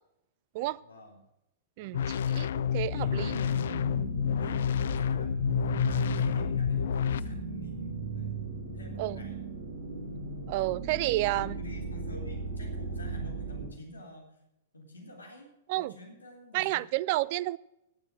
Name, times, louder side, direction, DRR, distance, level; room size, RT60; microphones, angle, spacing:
voice 1, 0.8-1.2 1.8-2.1 2.6-8.4 8.7-9.4 11.2-14.3 14.7-16.8, left 1 dB, 75° left, 3.6 m, -48 dB
voice 2, 1.8-3.3 9.0-9.2 10.5-11.6 15.7-15.9 16.5-17.6, right 18 dB, 45° right, 0.4 m, -30 dB
sound 1, 1.9-7.2, left 8 dB, 60° left, 0.5 m, -29 dB
sound 2, 3.0-13.7, right 1 dB, 70° right, 3.7 m, -35 dB
18.0 x 7.0 x 6.2 m
figure-of-eight pair, 100°, 0 cm